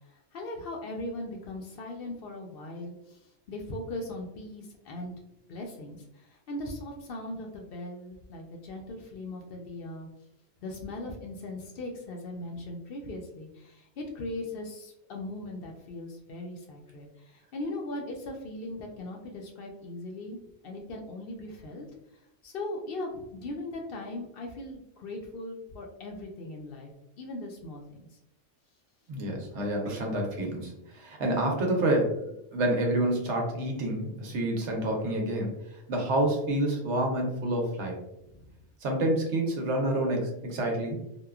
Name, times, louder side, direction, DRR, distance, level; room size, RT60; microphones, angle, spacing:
voice 1, 0.1-5.1 5.5-10.1 10.6-20.4 20.6-21.9 22.4-26.9 27.2-27.8 38.3-38.5, left 1 dB, 65° left, 1 dB, 0.7 m, -39 dB
voice 2, 29.1-32.2 32.5-35.5 35.9-38.0 38.8-41.0, right 1 dB, 85° right, 1 dB, 1.0 m, -28 dB
2.9 x 2.2 x 2.3 m, 0.84 s
omnidirectional pair, 1.2 m